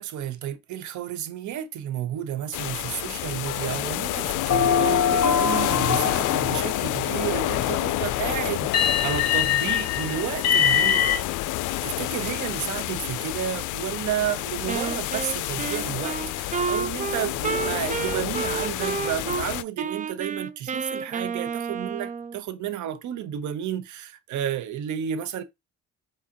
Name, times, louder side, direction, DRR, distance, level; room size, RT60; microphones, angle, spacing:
voice 1, 0.0-11.3 11.8-25.4, right 10 dB, 75° right, 0.7 m, -31 dB
sound 1, 2.5-19.6, left 16 dB, 85° left, 0.5 m, -29 dB
sound 2, 3.4-4.0 4.5-7.6 8.7-11.2, left 8 dB, 60° left, 1.4 m, -24 dB
Wind instrument woodwind instrument, 14.7-19.5 19.8-22.4, right 6 dB, 25° right, 0.4 m, -30 dB
4.7 x 3.7 x 2.7 m
cardioid pair, 90°, 30 cm